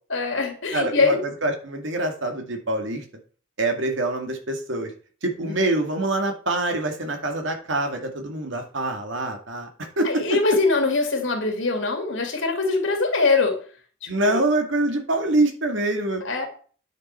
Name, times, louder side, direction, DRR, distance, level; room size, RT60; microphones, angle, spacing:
voice 1, 0.1-1.2 5.4-5.6 10.0-13.6 14.0-14.4 16.2-16.5, left 3 dB, 65° left, 3 dB, 2.6 m, -23 dB
voice 2, 0.7-3.0 3.6-4.9 5.2-10.6 14.1-16.2, right 2 dB, 65° right, 4 dB, 2.2 m, -25 dB
9.7 x 7.0 x 4.4 m, 0.41 s
head